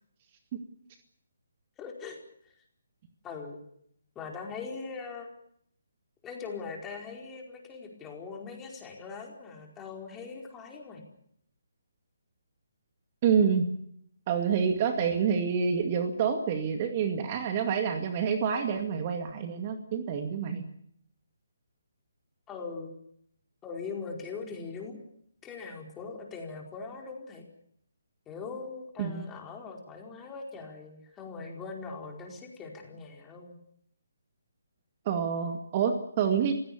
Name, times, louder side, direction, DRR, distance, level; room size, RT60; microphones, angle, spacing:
voice 1, 1.8-2.2 3.2-3.6 4.1-5.3 6.2-11.0 22.5-23.0 23.6-25.0 25.4-27.4 28.3-33.6, left 4 dB, 15° left, 1 dB, 4.7 m, -41 dB
voice 2, 13.2-13.7 14.3-20.6 29.0-29.2 35.1-36.5, right 6 dB, 35° right, 6 dB, 2.2 m, -27 dB
30.0 x 16.5 x 7.1 m, 0.69 s
figure-of-eight pair, 140°, 0 cm